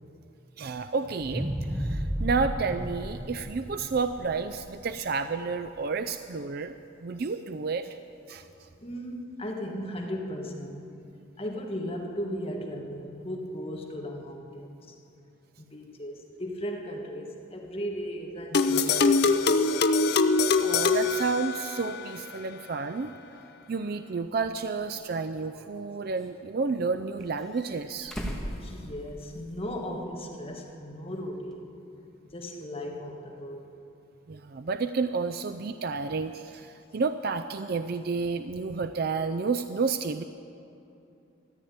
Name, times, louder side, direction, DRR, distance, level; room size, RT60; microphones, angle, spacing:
voice 1, 0.6-6.8 7.0-8.0 8.3-8.7 18.9-19.0 20.6-23.1 23.7-28.2 34.3-40.2, right 4 dB, 50° right, 9 dB, 0.4 m, -31 dB
sound 1, 1.2-5.5 5.9-6.0, equal, 15° right, 0.9 m, -33 dB
voice 2, 8.8-10.9 11.4-14.9 15.6-19.6 28.6-31.7 32.3-33.6, equal, 30° left, 1 dB, 1.6 m, -36 dB
sound 2, 18.5-22.0, left 4 dB, 50° left, 0.6 m, -23 dB
sound 3, 25.4-26.3 27.2-29.5 29.8-29.9 31.5-31.6, equal, 5° left, 1.5 m, -39 dB
14.5 x 10.0 x 9.4 m, 2.7 s
head